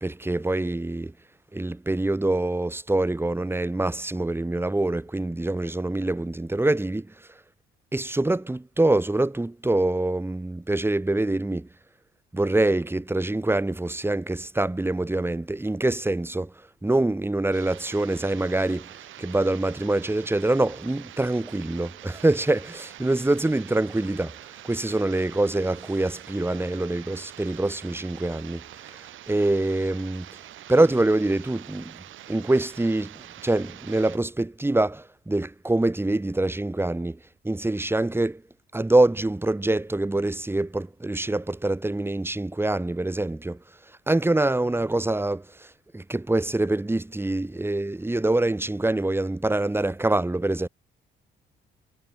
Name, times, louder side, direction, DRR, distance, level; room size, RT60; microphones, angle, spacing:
voice 1, 0.0-1.1 1.5-7.1 7.9-11.7 12.3-16.5 16.8-18.9 19.2-24.4 24.6-28.6 29.3-30.3 30.7-32.0 32.3-33.1 33.4-37.2 37.4-38.4 38.7-43.6 44.1-45.7 45.9-50.7, right 2 dB, 10° right, 2.5 m, -25 dB
sound 1, 17.5-34.2, right 13 dB, 80° right, 4.4 m, -45 dB
cardioid pair, 90°, 20 cm